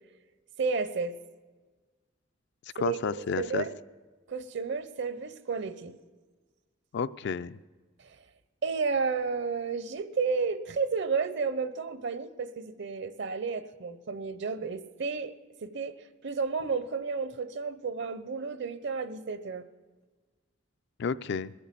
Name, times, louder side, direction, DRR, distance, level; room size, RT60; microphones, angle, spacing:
voice 1, 0.6-1.1 2.8-3.0 3.4-3.8 4.3-5.9 8.6-15.3 15.6-19.6, right 5 dB, 65° right, 12 dB, 0.8 m, -32 dB
voice 2, 2.8-3.7 6.9-7.6 21.0-21.5, left 5 dB, 60° left, 14 dB, 0.4 m, -31 dB
21.0 x 8.0 x 7.6 m, 1.3 s
head